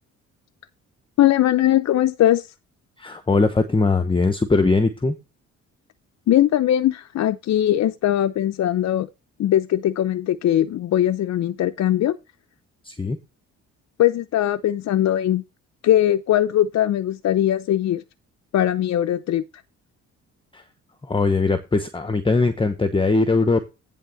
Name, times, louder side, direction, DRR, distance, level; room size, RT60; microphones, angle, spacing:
voice 1, 1.2-2.5 6.3-9.1 9.4-12.2 14.0-15.4 15.8-18.0 18.5-19.4, left 12 dB, 60° left, 0.6 m, -20 dB
voice 2, 3.0-5.1 12.8-13.2 20.5-20.6 21.0-23.6, left 3 dB, 15° left, 1.0 m, -20 dB
10.5 x 3.6 x 7.0 m
cardioid pair, 90°, 30 cm